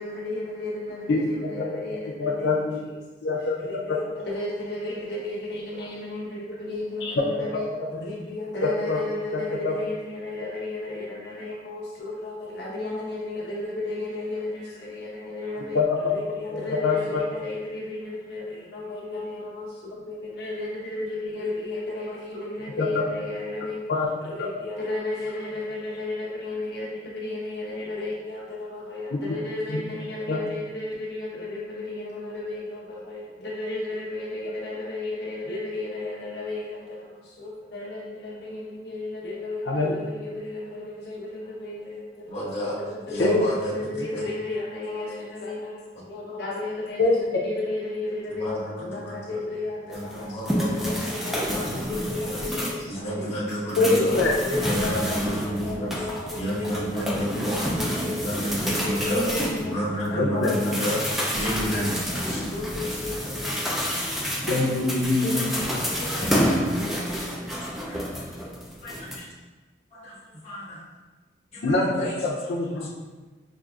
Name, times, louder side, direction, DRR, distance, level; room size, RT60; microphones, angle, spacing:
voice 1, 0.0-3.0 3.6-23.8 24.2-42.5 42.8-53.3 53.9-58.3 58.6-59.8 60.1-61.2 61.8-63.8 65.2-66.2, left 2 dB, 65° left, -5 dB, 1.0 m, -33 dB
voice 2, 2.2-2.8 3.2-3.6 3.9-4.0 7.0-7.5 7.8-7.9 8.9-9.0 9.3-9.7 15.7-16.1 16.5-17.0 22.8-23.0 23.9-24.1 29.1-29.2 29.7-29.8 30.3-30.4 39.6-39.9 43.2-43.5 47.0-47.4 53.8-54.3 60.2-60.5 64.5-65.4 66.2-66.6 71.6-72.9, left 3 dB, 85° left, -2 dB, 0.6 m, -24 dB
voice 3, 42.3-42.8 43.1-44.3 48.4-49.4 49.9-51.1 51.3-52.5 52.9-54.2 54.6-56.0 56.3-57.7 58.0-59.3 59.6-61.0 61.3-62.5 67.6-68.2 68.7-69.3 69.9-70.8 71.5-72.4 72.8-72.9, equal, 35° left, -9 dB, 1.3 m, -31 dB
sound 1, 49.9-52.9 53.3-60.1 60.4-69.2, equal, ahead, 0.4 m, -29 dB
6.0 x 2.5 x 2.4 m, 1.3 s
head